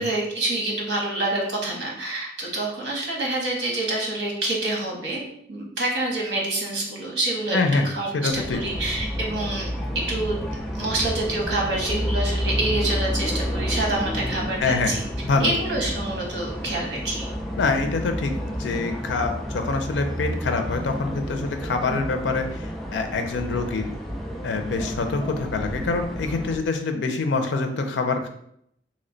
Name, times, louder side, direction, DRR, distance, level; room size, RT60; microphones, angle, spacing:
voice 1, 0.0-5.2 5.5-7.6 7.8-9.7 9.9-10.4 10.7-15.0 15.4-17.3, right 2 dB, 85° right, -2 dB, 1.0 m, -27 dB
voice 2, 7.5-7.8 8.1-8.6 14.6-14.9 15.2-15.5 17.6-18.3 18.6-22.5 22.9-23.9 24.4-28.3, left 3 dB, 90° left, 6 dB, 0.4 m, -25 dB
sound 1, 8.3-26.6, equal, ahead, 0.3 m, -30 dB
3.0 x 2.1 x 3.8 m, 0.73 s
head